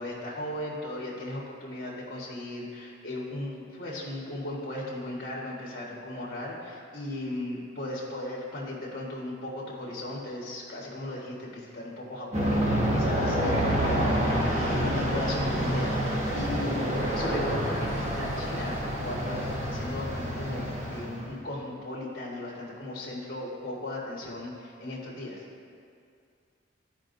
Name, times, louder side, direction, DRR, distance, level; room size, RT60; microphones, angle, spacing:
voice 1, 0.0-25.4, left 1 dB, 50° left, -5 dB, 1.4 m, -37 dB
Aircraft, 12.3-21.3, equal, 35° right, 1.1 m, -28 dB
15.0 x 5.1 x 2.6 m, 2.3 s
head